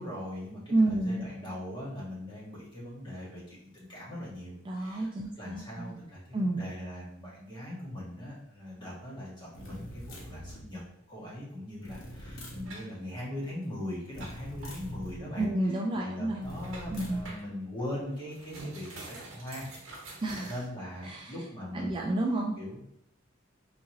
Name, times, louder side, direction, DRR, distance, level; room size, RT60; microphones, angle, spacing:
voice 1, 0.0-10.8 11.1-15.5 16.0-19.7 20.5-22.1 22.6-22.8, left 1 dB, 25° left, -6 dB, 1.4 m, -40 dB
voice 2, 0.7-1.3 4.7-6.0 6.3-6.6 15.4-16.5 16.9-17.3 20.2-20.5 21.0-21.3 21.7-22.6, right 1 dB, 25° right, 0 dB, 0.3 m, -30 dB
sound 1, 9.5-10.7 11.8-12.7 14.1-15.3 16.4-17.3, equal, 80° left, 0.9 m, -43 dB
sound 2, 12.6-14.8 15.6-15.7 16.1-17.5 18.0-21.1, right 2 dB, 80° right, 1.1 m, -47 dB
3.6 x 3.0 x 2.7 m, 0.78 s
head